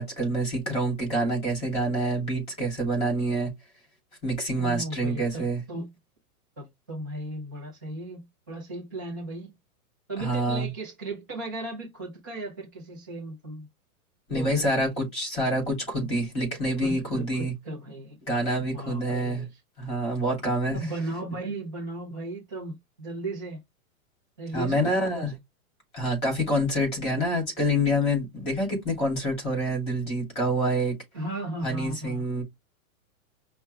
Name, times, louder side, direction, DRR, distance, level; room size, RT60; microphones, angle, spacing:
voice 1, 0.0-3.5 4.2-5.6 10.2-10.7 14.3-17.5 18.3-19.4 19.8-20.8 24.5-25.4 25.9-31.0 31.6-32.4, equal, 15° left, 2.8 m, -27 dB
voice 2, 4.5-5.9 6.6-9.5 10.1-13.7 14.3-14.9 16.8-18.2 18.6-19.6 20.7-23.6 24.4-25.3 31.1-32.2, right 2 dB, 15° right, 0.4 m, -36 dB
5.4 x 2.3 x 3.3 m
hypercardioid pair, 175°, 43 cm